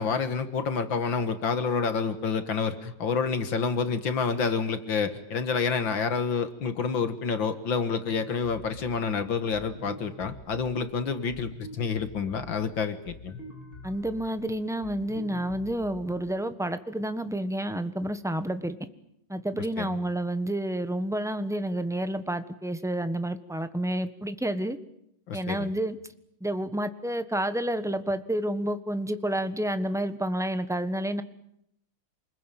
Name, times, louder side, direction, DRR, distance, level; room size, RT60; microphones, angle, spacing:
voice 1, 0.0-13.4 19.8-20.0 25.3-25.7, left 5 dB, 65° left, 10 dB, 2.3 m, -28 dB
sound 1, 9.5-16.3, left 1 dB, 25° left, 5.1 m, -46 dB
voice 2, 13.8-18.8 19.3-24.8 25.3-26.0 26.4-31.2, right 1 dB, ahead, 10 dB, 1.0 m, -29 dB
28.5 x 21.0 x 9.2 m, 0.75 s
omnidirectional pair, 2.3 m